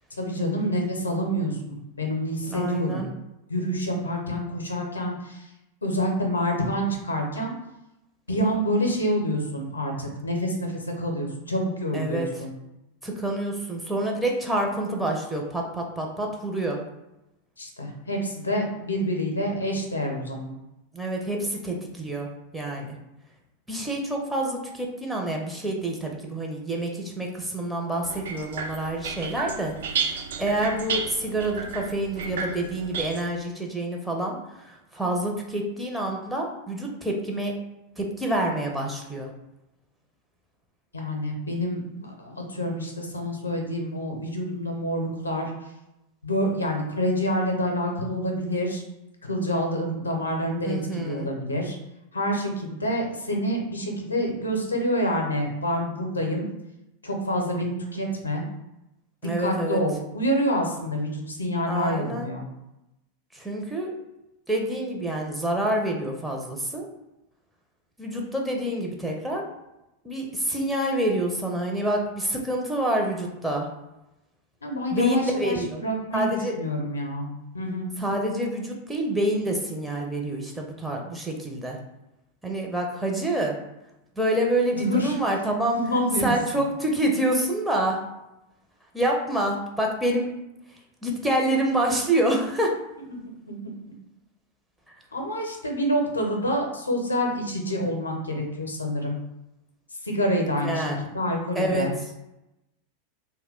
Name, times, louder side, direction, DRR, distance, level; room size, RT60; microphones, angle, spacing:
voice 1, 0.2-3.1 3.5-5.5 5.8-7.5 8.3-12.5 17.6-20.5 40.9-45.5 46.2-48.8 49.3-51.8 52.1-56.4 57.0-58.4 59.4-62.4 74.6-76.3 76.6-77.3 77.5-77.9 84.7-85.1 85.7-86.4 93.1-93.2 93.5-93.6 95.1-99.2 100.0-100.8 101.1-101.9, equal, 80° left, 1 dB, 0.5 m, -27 dB
voice 2, 2.4-3.1 11.9-12.3 13.0-16.8 20.9-22.3 22.5-23.0 23.7-37.5 38.0-39.3 50.6-51.3 59.2-59.8 61.7-62.3 63.3-64.0 64.5-66.9 68.0-69.5 70.0-73.7 74.9-75.8 76.1-76.5 78.0-81.8 82.4-83.6 84.2-85.8 86.2-88.0 88.9-90.3 91.0-92.8 100.6-101.0 101.5-101.9, right 1 dB, 5° right, -1 dB, 0.5 m, -27 dB
sound 1, 28.0-33.2, right 5 dB, 60° right, 0.3 m, -32 dB
2.2 x 2.1 x 3.4 m, 0.92 s
figure-of-eight pair, 90°, 0 cm